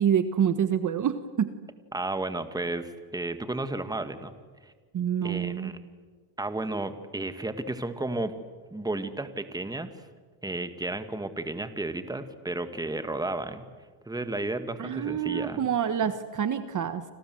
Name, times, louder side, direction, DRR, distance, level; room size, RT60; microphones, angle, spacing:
voice 1, 0.0-1.5 4.9-5.7 14.8-17.0, right 8 dB, 40° right, 11 dB, 1.4 m, -27 dB
voice 2, 1.9-4.3 4.6-4.7 5.2-5.7 6.4-8.3 8.7-10.0 10.4-13.7 14.1-15.7, right 2 dB, 10° right, 9 dB, 1.9 m, -33 dB
29.5 x 26.0 x 7.9 m, 1.5 s
cardioid pair, 115°, 48 cm